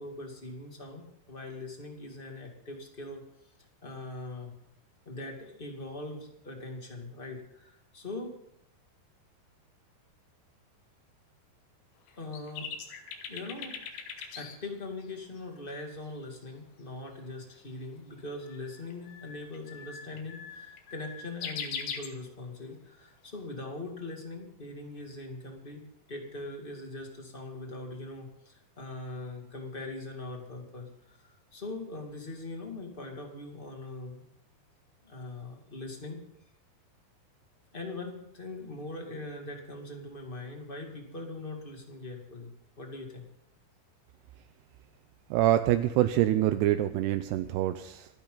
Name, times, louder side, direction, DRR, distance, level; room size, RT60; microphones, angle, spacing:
voice 1, 0.0-3.3 3.8-4.5 5.1-8.3 12.2-12.7 13.3-13.8 14.3-25.8 26.1-34.3 35.0-36.2 37.7-43.3, left 2 dB, 20° left, 2 dB, 1.6 m, -41 dB
sound 1, 12.1-14.6 15.0-15.1 15.4-15.5 18.5-22.1, left 7 dB, 90° left, 3.9 m, -41 dB
voice 2, 45.3-48.1, right 13 dB, 80° right, 9 dB, 2.7 m, -25 dB
26.5 x 10.5 x 4.0 m, 0.76 s
omnidirectional pair, 4.8 m